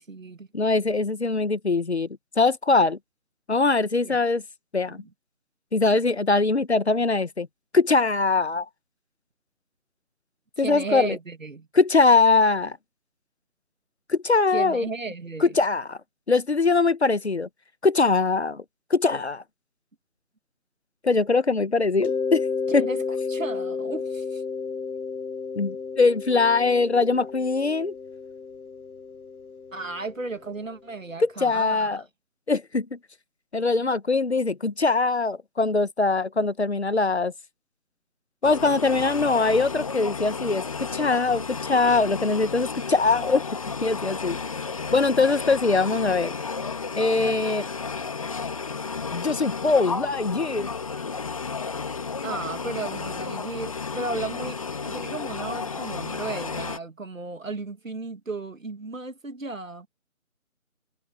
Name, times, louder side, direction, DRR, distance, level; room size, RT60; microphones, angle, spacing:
voice 1, 0.0-0.5 4.0-4.2 4.9-5.1 10.6-11.7 14.5-15.6 22.7-23.0 23.3-24.4 29.7-32.0 52.2-59.9, right 3 dB, 65° right, 2.2 m, -35 dB
voice 2, 0.5-2.1 2.4-3.0 3.5-4.4 4.7-5.0 5.7-7.5 7.7-8.7 10.6-11.2 11.7-12.8 14.1-14.9 15.4-16.0 16.3-17.5 17.8-18.6 18.9-19.4 21.0-22.5 22.7-22.8 25.5-27.9 31.2-32.0 32.5-33.0 33.5-37.3 38.4-43.4 43.8-44.4 44.9-46.3 46.9-47.7 49.1-50.7, left 3 dB, 50° left, 1.2 m, -22 dB
Mallet percussion, 22.0-30.6, left 5 dB, 85° left, 1.0 m, -32 dB
sound 1, 38.4-56.8, left 5 dB, 25° left, 2.0 m, -32 dB
figure-of-eight pair, 165°, 43 cm